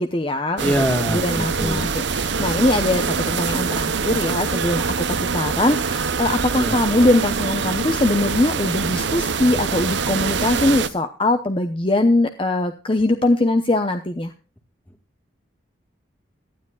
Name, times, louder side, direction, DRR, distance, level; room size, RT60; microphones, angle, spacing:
voice 1, 0.0-0.7 1.1-14.3, left 2 dB, 25° left, 7 dB, 0.8 m, -21 dB
voice 2, 0.6-1.9 6.6-6.8, equal, 10° left, 7 dB, 1.5 m, -24 dB
sound 1, 0.6-10.9, right 5 dB, 70° right, 0.8 m, -24 dB
18.0 x 12.5 x 2.3 m, 0.35 s
head